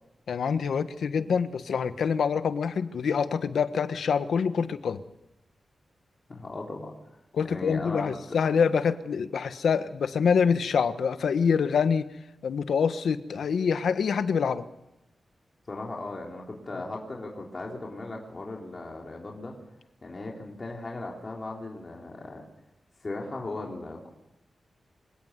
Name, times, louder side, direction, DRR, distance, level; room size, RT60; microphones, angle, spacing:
voice 1, 0.3-5.0 7.3-12.1 12.4-14.7, left 6 dB, 90° left, 11 dB, 1.4 m, -26 dB
voice 2, 6.3-6.9 7.4-8.1 15.7-19.5 20.0-22.4 23.0-24.1, left 2 dB, 30° left, -1 dB, 3.6 m, -37 dB
26.5 x 17.0 x 8.2 m, 0.90 s
wide cardioid pair, 175°, 0 cm